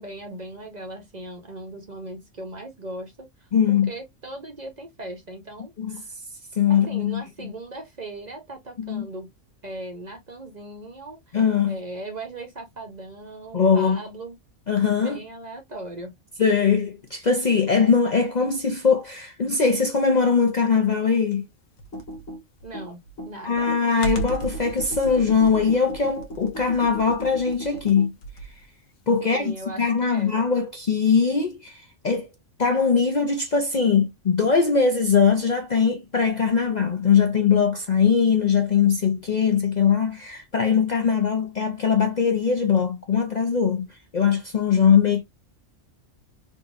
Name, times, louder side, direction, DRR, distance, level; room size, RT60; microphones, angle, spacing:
voice 1, 0.0-3.5 3.9-6.0 6.7-9.3 9.6-11.4 11.7-14.4 15.0-16.1 22.6-23.0 23.3-23.8 29.2-30.4, right 2 dB, 40° right, 0.8 m, -38 dB
voice 2, 3.5-3.9 5.8-6.0 6.5-7.2 8.8-9.0 11.3-11.7 13.5-14.0 14.7-15.2 16.4-21.4 23.4-28.1 29.1-32.3 32.6-43.9 44.1-45.2, left 6 dB, 50° left, 0.6 m, -21 dB
Computer keyboard, 21.8-28.6, right 2 dB, 80° left, 1.2 m, -35 dB
3.6 x 2.8 x 2.5 m
omnidirectional pair, 1.3 m